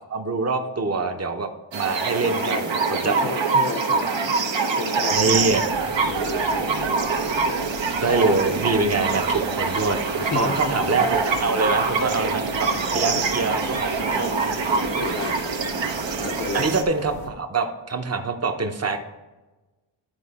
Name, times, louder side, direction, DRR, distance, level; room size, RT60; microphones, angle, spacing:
voice 1, 0.1-2.6 2.9-3.2 5.1-5.6 8.0-14.8 16.5-19.0, right 3 dB, 35° right, 6 dB, 0.9 m, -25 dB
sound 1, 1.7-16.8, right 4 dB, 70° right, 1.0 m, -24 dB
voice 2, 2.2-2.7 3.0-4.4 4.7-5.6 6.1-7.0 7.3-7.6 10.2-10.6 12.7-13.3 14.9-15.5 16.2-16.7, left 4 dB, 30° left, 9 dB, 0.6 m, -33 dB
sound 2, 5.1-17.3, left 3 dB, 85° left, 1.4 m, -40 dB
11.0 x 4.4 x 4.2 m, 1.1 s
wide cardioid pair, 100°, 46 cm